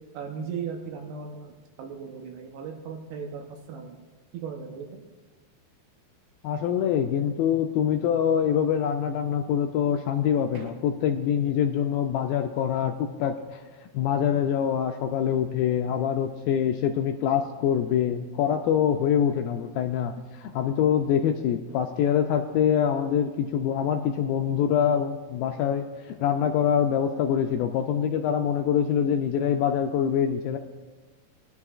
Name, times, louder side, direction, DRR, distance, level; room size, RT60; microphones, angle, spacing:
voice 1, 0.1-1.5 1.8-4.0 4.3-5.0 10.5-10.7, right 6 dB, 80° right, 2 dB, 2.9 m, -37 dB
voice 2, 6.4-20.1 20.4-30.6, left 8 dB, 80° left, 5 dB, 2.1 m, -25 dB
21.5 x 11.0 x 2.4 m, 1.3 s
omnidirectional pair, 4.6 m